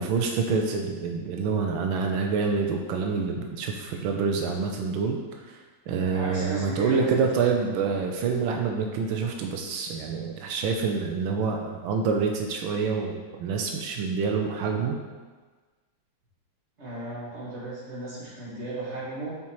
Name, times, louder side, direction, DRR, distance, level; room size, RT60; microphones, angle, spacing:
voice 1, 0.0-5.2 5.9-15.0, right 5 dB, 90° right, 2 dB, 1.4 m, -27 dB
voice 2, 6.1-7.2 16.8-19.4, right 2 dB, 35° right, -9 dB, 2.3 m, -35 dB
7.2 x 4.3 x 3.0 m, 1.4 s
omnidirectional pair, 2.1 m